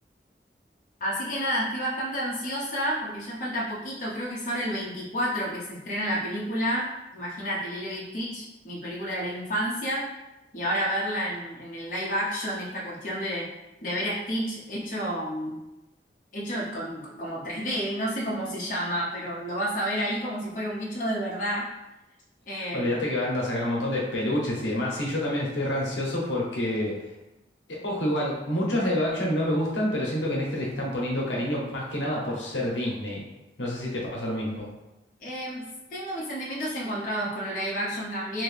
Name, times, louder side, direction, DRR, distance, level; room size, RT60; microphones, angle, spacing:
voice 1, 1.0-6.9 7.1-10.1 10.5-13.5 13.8-15.6 16.3-21.7 22.5-22.9 35.2-38.4, equal, 45° left, -6 dB, 0.8 m, -30 dB
voice 2, 22.7-27.0 27.8-33.2 33.6-34.7, left 1 dB, 90° left, -3 dB, 0.9 m, -27 dB
2.9 x 2.7 x 3.4 m, 0.96 s
head